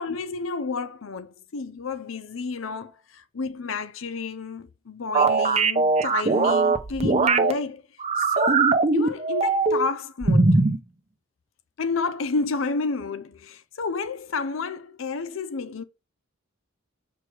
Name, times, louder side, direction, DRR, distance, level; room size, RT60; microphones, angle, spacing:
voice 1, 0.0-7.8 8.2-10.6 11.8-15.8, left 4 dB, 70° left, 0.6 m, -30 dB
sound 1, 5.1-7.5 8.0-9.9 10.2-10.8, right 3 dB, 35° right, 0.7 m, -20 dB
6.1 x 4.7 x 4.9 m
head